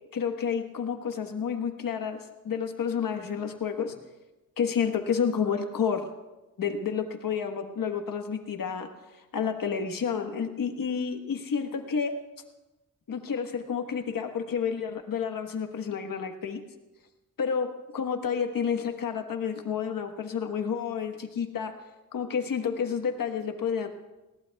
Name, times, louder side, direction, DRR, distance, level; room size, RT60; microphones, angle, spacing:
voice 1, 0.1-3.9 4.6-6.1 6.6-8.9 9.3-12.1 13.1-16.6 17.4-21.7 22.1-23.9, left 6 dB, 80° left, 5 dB, 1.3 m, -30 dB
20.5 x 18.0 x 2.3 m, 1.1 s
wide cardioid pair, 135°, 33 cm